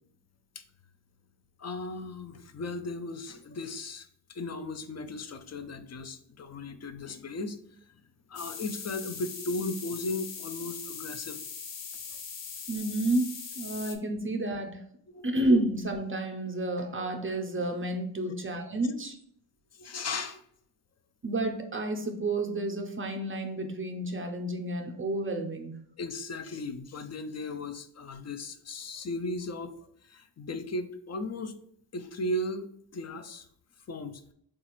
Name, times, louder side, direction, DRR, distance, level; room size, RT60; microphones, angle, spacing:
voice 1, 1.6-7.6 8.3-11.4 15.1-15.3 18.2-18.4 19.7-20.4 26.0-29.7 30.1-31.5 31.9-33.5 33.9-34.2, left 2 dB, 40° left, 9 dB, 0.4 m, -36 dB
sound 1, 8.3-13.9, left 6 dB, 85° left, 0.6 m, -41 dB
voice 2, 12.7-14.8 15.2-19.2 21.2-25.8, right 1 dB, 30° right, 3 dB, 0.5 m, -30 dB
3.9 x 2.4 x 3.0 m, 0.65 s
wide cardioid pair, 75°, 43 cm